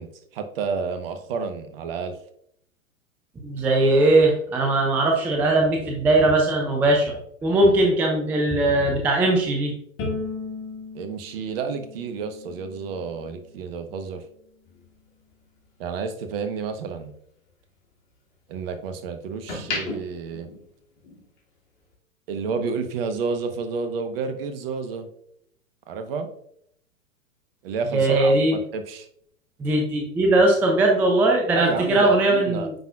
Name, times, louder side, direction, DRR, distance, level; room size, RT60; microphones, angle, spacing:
voice 1, 0.0-2.1 10.9-14.2 15.8-17.1 18.5-20.5 22.3-25.1 25.9-26.3 27.6-29.1 31.5-32.7, right 5 dB, 45° right, 8 dB, 1.1 m, -30 dB
voice 2, 3.4-7.1 7.4-9.7 27.9-28.6 29.6-32.7, right 2 dB, 5° right, 0 dB, 0.4 m, -20 dB
Bowed string instrument, 10.0-13.2, left 3 dB, 30° left, 2.2 m, -36 dB
sound 1, 14.6-17.0 17.4-18.8 19.2-21.4 21.7-21.9, left 3 dB, 50° left, 2.6 m, -36 dB
9.3 x 5.8 x 2.4 m, 0.69 s
figure-of-eight pair, 105°, 41 cm